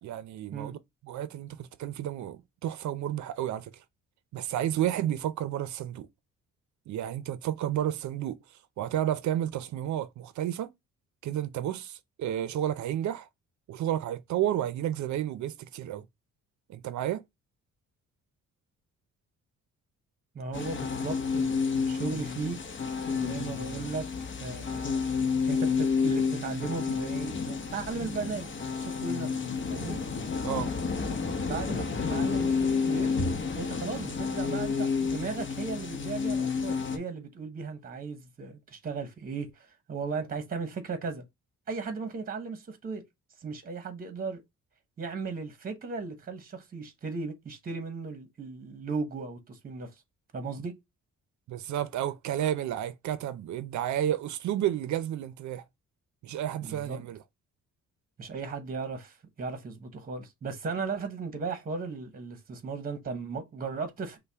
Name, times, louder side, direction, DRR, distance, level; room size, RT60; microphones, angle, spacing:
voice 1, 0.0-0.8 1.0-3.7 4.3-6.1 6.9-8.4 8.8-10.7 11.2-13.3 13.7-16.1 16.7-17.2 30.4-30.7 51.5-55.6 56.2-57.2, right 11 dB, 75° right, 0.6 m, -31 dB
voice 2, 20.3-22.6 23.1-24.1 24.4-25.0 25.5-28.5 28.7-29.3 29.7-30.0 31.5-33.1 33.6-41.2 41.7-43.0 43.4-44.4 45.0-49.9 50.3-50.7 56.6-57.0 58.2-64.2, right 4 dB, 30° right, 1.0 m, -36 dB
sound 1, 20.5-37.0, left 5 dB, 40° left, 0.9 m, -30 dB
5.5 x 2.2 x 3.4 m
cardioid pair, 160°, 29 cm